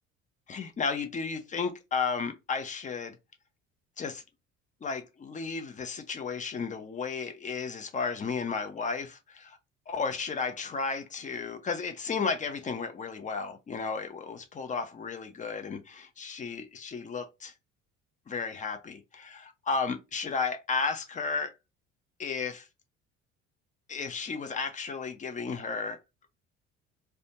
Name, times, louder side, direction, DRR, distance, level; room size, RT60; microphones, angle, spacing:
voice 1, 0.5-3.2 4.0-4.2 4.8-9.6 9.9-17.5 18.3-21.5 22.2-22.7 23.9-26.0, left 5 dB, 20° left, 0.4 m, -33 dB
2.5 x 2.2 x 2.8 m
figure-of-eight pair, 55°, 41 cm